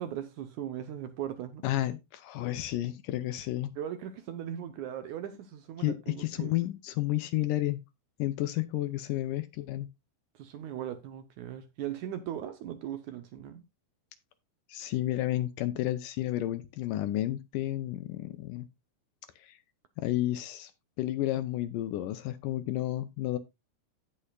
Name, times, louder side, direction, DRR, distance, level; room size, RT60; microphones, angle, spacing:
voice 1, 0.0-1.6 3.8-6.5 10.4-13.6, right 10 dB, 70° right, 2.0 m, -38 dB
voice 2, 1.6-3.7 5.8-7.8 8.2-9.9 14.7-18.7 19.4-19.6 20.0-20.7 21.0-23.4, left 15 dB, 75° left, 2.1 m, -31 dB
16.5 x 5.5 x 2.3 m
omnidirectional pair, 4.2 m